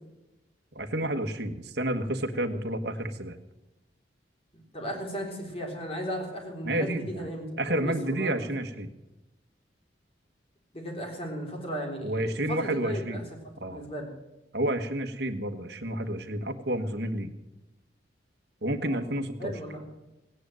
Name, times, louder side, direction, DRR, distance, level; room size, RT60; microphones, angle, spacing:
voice 1, 0.7-3.4 6.6-7.3 7.6-8.9 12.0-13.3 13.6-13.9 14.5-17.3 18.6-19.6, right 1 dB, 60° right, 6 dB, 1.4 m, -30 dB
voice 2, 4.7-7.4 7.7-8.5 10.7-13.2 13.6-14.1 18.8-19.0 19.4-19.8, equal, 30° left, 1 dB, 3.6 m, -36 dB
17.0 x 10.0 x 7.7 m, 0.97 s
head